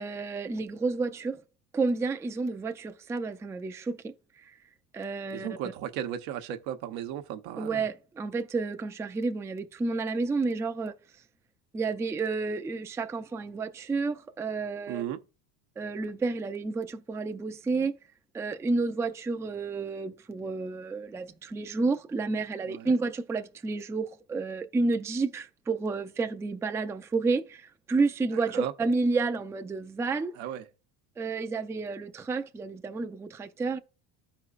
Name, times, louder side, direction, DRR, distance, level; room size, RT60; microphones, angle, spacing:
voice 1, 0.0-1.4 1.7-4.5 4.9-5.5 7.6-10.9 11.7-15.0 15.8-18.0 18.3-30.4 31.2-33.8, right 3 dB, 10° right, 0.3 m, -30 dB
voice 2, 5.3-7.9 14.9-15.2 22.6-22.9 28.3-28.7 30.4-30.7, right 10 dB, 85° right, 0.9 m, -35 dB
13.0 x 4.4 x 2.4 m
supercardioid pair, 105°, 40 cm